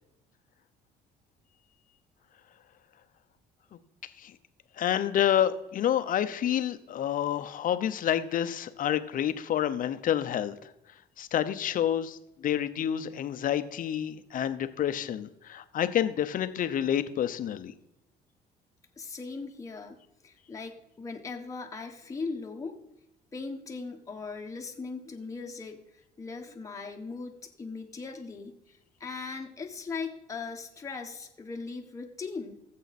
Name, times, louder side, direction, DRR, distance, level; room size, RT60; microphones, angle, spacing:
voice 1, 4.8-10.5 11.2-17.7, left 10 dB, 55° left, 11 dB, 0.8 m, -28 dB
voice 2, 19.0-22.8 23.3-32.6, left 4 dB, 20° left, 1 dB, 1.2 m, -39 dB
14.5 x 7.4 x 4.2 m, 0.85 s
cardioid pair, 110°, 17 cm